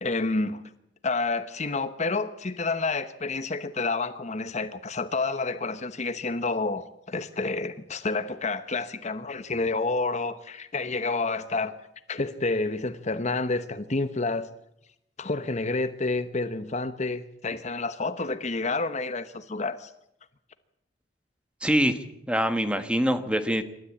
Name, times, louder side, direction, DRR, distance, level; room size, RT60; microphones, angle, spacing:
voice 1, 0.0-0.6 1.0-11.8 12.1-14.5 15.2-19.9, left 3 dB, 35° left, 0.9 m, -29 dB
voice 2, 21.6-22.0 22.3-23.6, equal, 5° right, 1.4 m, -24 dB
27.0 x 13.0 x 8.5 m
head